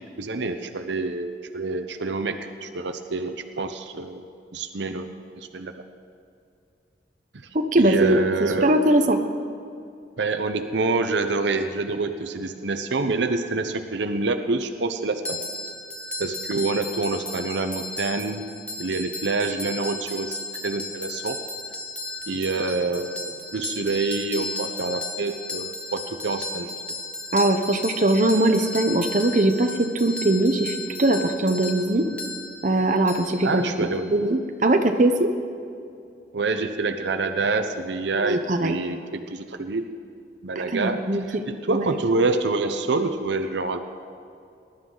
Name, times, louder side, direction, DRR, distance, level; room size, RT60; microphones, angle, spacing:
voice 1, 0.2-5.7 7.8-8.7 10.2-15.4 16.2-18.4 18.8-21.4 22.3-26.8 33.4-34.3 36.3-39.8 40.4-41.0 41.3-43.8, right 3 dB, 75° right, 7 dB, 0.7 m, -27 dB
voice 2, 7.5-9.2 27.3-32.0 32.6-33.7 34.1-35.3 38.1-38.8 40.7-41.3 41.7-41.8, right 1 dB, 45° right, 5 dB, 0.8 m, -21 dB
sound 1, 15.2-34.0, left 2 dB, 5° left, 0.9 m, -35 dB
20.0 x 11.5 x 3.9 m, 2.5 s
head